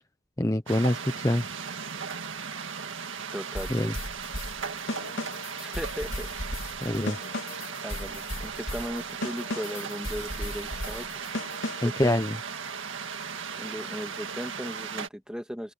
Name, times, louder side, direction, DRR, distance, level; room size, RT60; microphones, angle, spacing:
voice 1, 0.4-1.4 3.7-3.9 6.8-7.2 11.8-12.4, left 1 dB, 15° left, 0.9 m, -25 dB
sound 1, 0.7-15.1, right 6 dB, 65° right, 1.9 m, -37 dB
voice 2, 3.3-4.0 5.6-6.3 7.8-11.1 11.8-12.2 13.6-15.7, equal, 5° right, 2.0 m, -37 dB
sound 2, 3.5-12.0, left 1 dB, 70° left, 3.0 m, -36 dB
open air
head